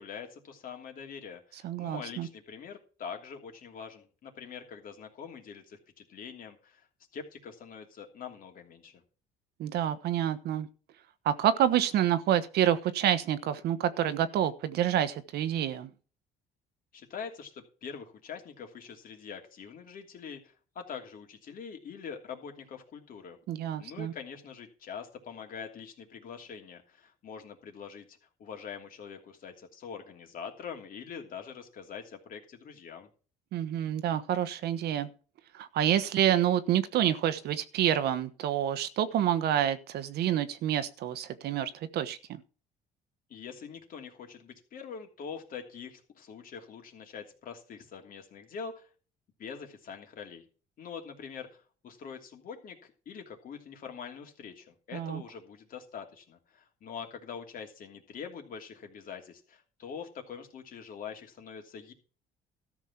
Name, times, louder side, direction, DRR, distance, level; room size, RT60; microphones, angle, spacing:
voice 1, 0.0-6.9 7.1-8.9 16.9-17.5 17.8-23.4 23.8-33.1 43.3-48.9 49.4-50.4 50.8-61.9, left 6 dB, 55° left, 2.9 m, -44 dB
voice 2, 1.6-2.3 9.6-10.7 11.2-15.9 23.5-24.1 33.5-35.1 35.5-42.4 54.9-55.2, right 11 dB, 70° right, 1.2 m, -28 dB
13.5 x 6.2 x 5.9 m
cardioid pair, 110°, 17 cm